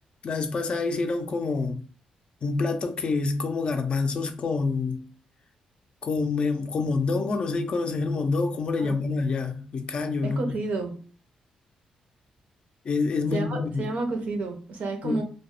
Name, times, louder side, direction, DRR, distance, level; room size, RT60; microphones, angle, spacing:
voice 1, 0.2-1.8 2.4-5.1 6.0-10.4 12.8-13.9 15.0-15.2, left 4 dB, 45° left, 0.4 m, -27 dB
voice 2, 10.2-11.0 13.3-15.2, right 3 dB, 70° right, 0.6 m, -30 dB
2.2 x 2.0 x 2.9 m
cardioid pair, 95°, 2 cm